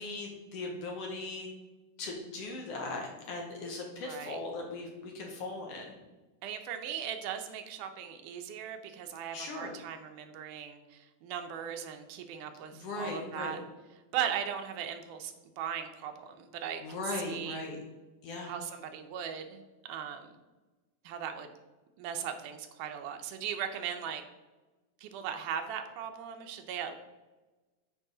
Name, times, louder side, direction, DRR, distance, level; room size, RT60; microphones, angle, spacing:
voice 1, 0.0-1.5 2.0-6.0 9.3-9.7 12.7-13.6 16.8-17.8 18.2-18.5, left 3 dB, 65° left, 1 dB, 1.7 m, -39 dB
voice 2, 4.0-4.4 6.4-13.6 14.1-17.6 18.5-20.3 21.0-21.5 22.0-24.2 25.0-27.0, right 8 dB, 80° right, 6 dB, 2.2 m, -38 dB
8.8 x 4.7 x 3.9 m, 1.2 s
omnidirectional pair, 3.7 m